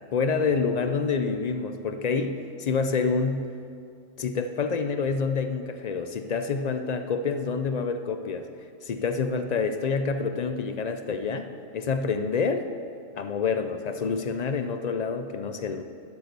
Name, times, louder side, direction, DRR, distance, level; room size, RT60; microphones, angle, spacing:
voice 1, 0.1-3.5 4.2-8.5 8.8-12.6 13.2-15.8, left 5 dB, 70° left, 8 dB, 0.4 m, -27 dB
12.0 x 7.2 x 6.7 m, 2.4 s
omnidirectional pair, 1.4 m